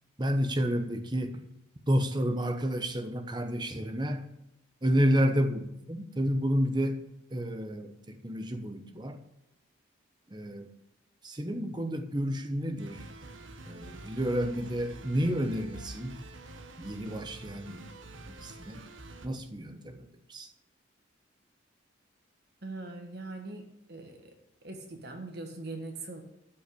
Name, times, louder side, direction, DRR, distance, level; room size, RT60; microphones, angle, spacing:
voice 1, 0.2-1.4 1.9-4.3 4.8-7.1 7.3-9.2 10.3-10.7 11.2-13.1 13.7-16.2 16.8-17.8 18.3-18.8 19.2-20.5, equal, 20° right, 1.0 m, -30 dB
sound 1, 12.8-19.3, right 2 dB, 80° right, 1.2 m, -47 dB
voice 2, 22.6-24.4 24.6-26.2, right 2 dB, 55° right, 1.5 m, -41 dB
13.0 x 5.5 x 8.4 m
head